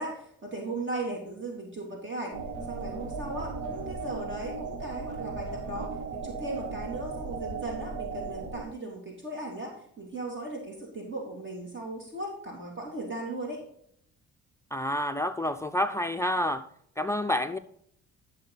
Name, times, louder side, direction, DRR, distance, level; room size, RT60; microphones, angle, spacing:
voice 1, 0.0-2.3 2.7-13.6, right 2 dB, 40° right, 3.0 m, -37 dB
sound 1, 2.3-8.6, right 5 dB, 85° right, 1.8 m, -37 dB
sound 2, 2.5-8.3, right 1 dB, 70° right, 2.9 m, -47 dB
voice 2, 14.7-16.7 17.0-17.6, left 1 dB, 10° left, 0.5 m, -28 dB
12.5 x 6.7 x 4.0 m
cardioid pair, 90°, 30 cm